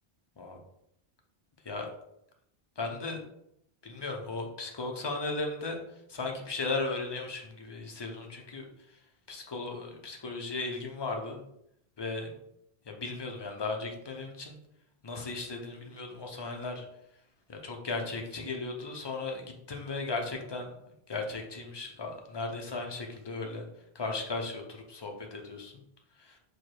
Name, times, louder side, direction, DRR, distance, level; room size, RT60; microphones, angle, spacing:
voice 1, 2.8-3.2 3.8-5.8 6.1-9.0 9.3-11.4 12.0-12.3 12.9-14.6 15.0-16.9 17.5-20.7 21.1-23.6 23.9-24.6 24.9-25.7 26.2-26.4, left 3 dB, 30° left, 2 dB, 0.6 m, -36 dB
4.7 x 2.3 x 4.6 m, 0.77 s
omnidirectional pair, 1.0 m